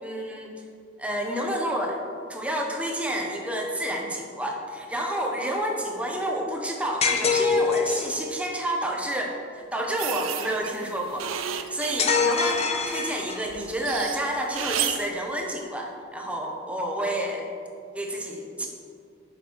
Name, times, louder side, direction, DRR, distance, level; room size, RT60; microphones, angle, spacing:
voice 1, 0.0-0.5 1.0-2.0 2.3-9.3 9.7-11.3 11.5-17.4 17.9-18.7, right 1 dB, 5° right, 0 dB, 1.1 m, -29 dB
sound 1, 7.0-8.2 12.0-13.6, left 5 dB, 30° left, 0.6 m, -24 dB
sound 2, 10.0-12.9 13.3-15.1, right 10 dB, 90° right, 0.5 m, -32 dB
9.6 x 6.5 x 4.8 m, 2.3 s
head